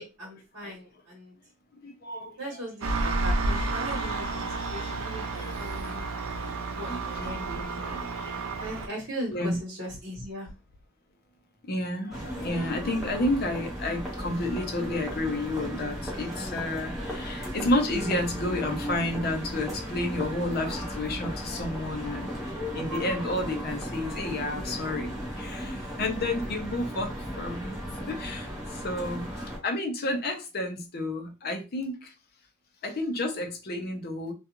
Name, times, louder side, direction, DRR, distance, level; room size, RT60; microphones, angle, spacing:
voice 1, 0.0-1.3 2.4-6.0 6.7-7.8 8.6-10.5, equal, 55° right, 1.2 m, -39 dB
voice 2, 1.8-2.4 5.3-5.9 6.4-6.5 6.9-7.4 7.7-8.4 8.8-8.9 9.3-9.6 11.6-27.7 28.1-32.1 32.8-34.3, left 2 dB, 45° left, 0.6 m, -31 dB
Engine, 2.8-8.9, right 3 dB, 75° right, 0.4 m, -31 dB
sound 1, 12.1-29.6, equal, ahead, 0.8 m, -36 dB
2.3 x 2.3 x 2.9 m
head